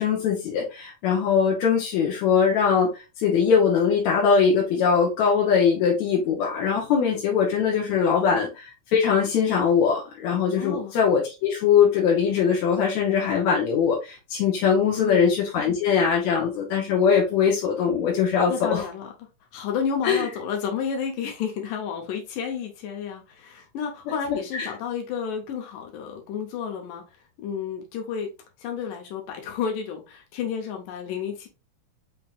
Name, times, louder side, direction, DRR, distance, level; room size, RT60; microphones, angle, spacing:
voice 1, 0.0-18.8 20.0-20.3 24.5-24.7, left 6 dB, 70° left, 2.0 m, -21 dB
voice 2, 10.6-10.9 14.9-15.2 18.5-19.1 19.5-28.3 28.6-31.5, left 7 dB, 90° left, 2.5 m, -31 dB
5.6 x 3.5 x 2.3 m
omnidirectional pair, 3.7 m